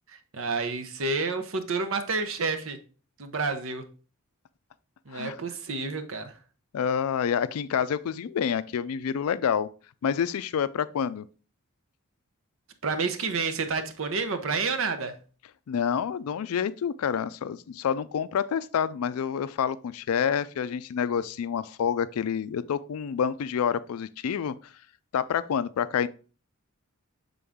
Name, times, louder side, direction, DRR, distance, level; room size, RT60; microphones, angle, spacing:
voice 1, 0.1-2.8 3.2-3.8 5.1-6.3 12.8-15.2, right 4 dB, 65° right, 0.8 m, -29 dB
voice 2, 6.7-9.7 10.0-11.3 15.7-24.5 25.1-26.1, left 7 dB, 80° left, 0.4 m, -28 dB
7.0 x 3.8 x 3.5 m
head